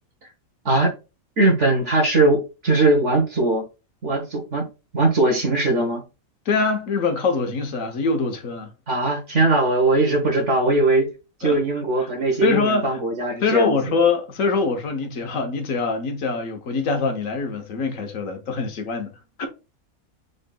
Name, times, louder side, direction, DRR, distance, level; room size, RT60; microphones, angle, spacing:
voice 1, 1.4-3.6 4.0-4.7 4.9-6.0 8.9-11.1 11.4-13.9, right 2 dB, 55° right, 1.4 m, -20 dB
voice 2, 6.5-8.7 11.4-11.6 12.4-13.0 13.4-19.1 19.4-19.5, left 4 dB, 70° left, 1.3 m, -23 dB
5.5 x 3.9 x 2.3 m
omnidirectional pair, 1.5 m